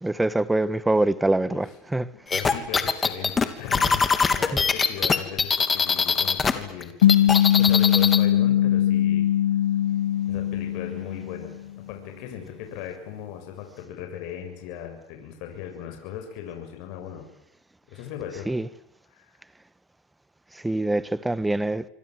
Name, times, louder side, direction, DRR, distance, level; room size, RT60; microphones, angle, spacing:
voice 1, 0.0-2.1 4.5-4.6 18.5-18.7 20.5-21.8, right 2 dB, 10° right, 1.5 m, -24 dB
voice 2, 2.3-4.0 4.3-9.3 10.3-11.6 11.9-17.3 17.9-18.5 19.1-19.3, left 9 dB, 65° left, 7.0 m, -38 dB
sound 1, 2.3-6.5 6.8-8.2, left 5 dB, 20° left, 3.1 m, -22 dB
sound 2, 7.0-11.7, left 11 dB, 85° left, 1.5 m, -21 dB
28.0 x 25.0 x 7.9 m
supercardioid pair, 105°, 0 cm